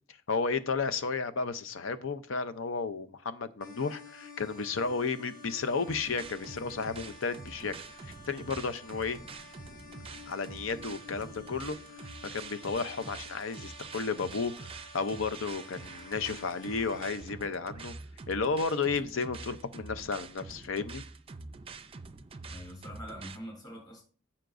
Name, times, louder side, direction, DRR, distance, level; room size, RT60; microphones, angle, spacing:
voice 1, 0.3-7.7 8.1-9.2 10.3-11.8 12.3-17.9 18.3-21.0, left 4 dB, 80° left, 0.7 m, -33 dB
sound 1, 3.6-17.1, left 3 dB, 45° left, 1.3 m, -51 dB
sound 2, 5.9-23.4, right 4 dB, 30° right, 0.5 m, -46 dB
voice 2, 22.5-24.0, equal, 20° left, 3.2 m, -44 dB
14.0 x 5.8 x 2.6 m
head